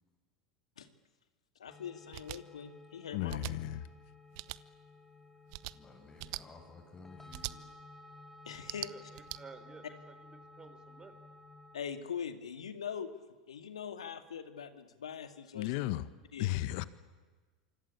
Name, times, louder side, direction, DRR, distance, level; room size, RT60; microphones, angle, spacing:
voice 1, 1.6-3.4 8.5-8.9 11.7-13.1 13.5-15.7 16.3-16.5, left 7 dB, 90° left, 8 dB, 2.3 m, -42 dB
sound 1, 1.7-11.8, left 2 dB, 10° left, 4.3 m, -55 dB
sound 2, 2.1-2.4 3.3-3.5 4.3-4.6 5.5-5.7 6.2-6.4 7.3-7.5 8.5-9.4, right 21 dB, 65° right, 0.9 m, -41 dB
voice 2, 3.1-3.9 15.5-16.1 16.4-16.8, left 15 dB, 65° left, 14 dB, 1.6 m, -34 dB
voice 3, 5.6-7.7, left 3 dB, 25° left, 1 dB, 6.9 m, -54 dB
voice 4, 8.9-11.2, right 4 dB, 25° right, 11 dB, 3.9 m, -54 dB
27.5 x 25.5 x 8.6 m, 1.3 s
hypercardioid pair, 95°, 3 cm